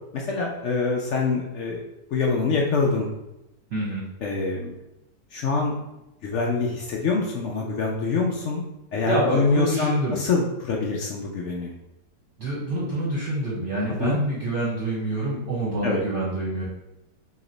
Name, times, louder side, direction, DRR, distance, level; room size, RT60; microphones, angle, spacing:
voice 1, 0.1-1.8 2.1-3.1 4.2-4.7 5.3-5.8 6.2-8.6 8.9-11.7 13.9-14.2 15.8-16.0, left 4 dB, 80° left, -1 dB, 0.6 m, -25 dB
voice 2, 3.7-4.0 9.0-10.2 12.4-16.6, right 1 dB, 50° right, -7 dB, 1.2 m, -26 dB
3.1 x 2.9 x 3.8 m, 0.92 s
omnidirectional pair, 1.9 m